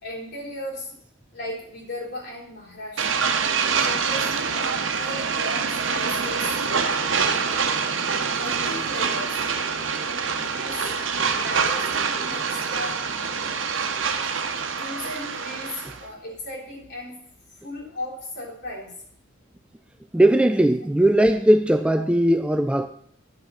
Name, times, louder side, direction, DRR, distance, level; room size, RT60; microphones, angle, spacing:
voice 1, 0.0-1.0 1.3-3.3 3.8-9.4 10.2-13.9 14.6-17.2 17.6-19.0, left 1 dB, 60° left, 3.6 m, -37 dB
sound 1, 3.0-16.0, right 5 dB, 80° right, 1.0 m, -25 dB
voice 2, 20.1-22.9, right 1 dB, 5° right, 0.3 m, -18 dB
10.5 x 6.0 x 5.5 m
head